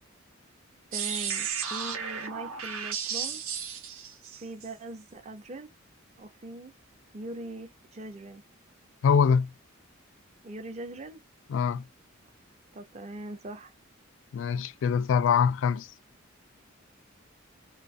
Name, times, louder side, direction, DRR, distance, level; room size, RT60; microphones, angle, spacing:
voice 1, 0.9-3.4 4.4-5.7 6.2-6.7 7.1-8.4 10.4-11.2 12.7-13.7, right 1 dB, 30° right, 0.4 m, -41 dB
sound 1, 0.9-4.7, right 7 dB, 80° right, 0.8 m, -34 dB
voice 2, 9.0-9.5 11.5-11.8 14.3-15.9, left 6 dB, 60° left, 0.3 m, -23 dB
2.3 x 2.3 x 2.4 m
head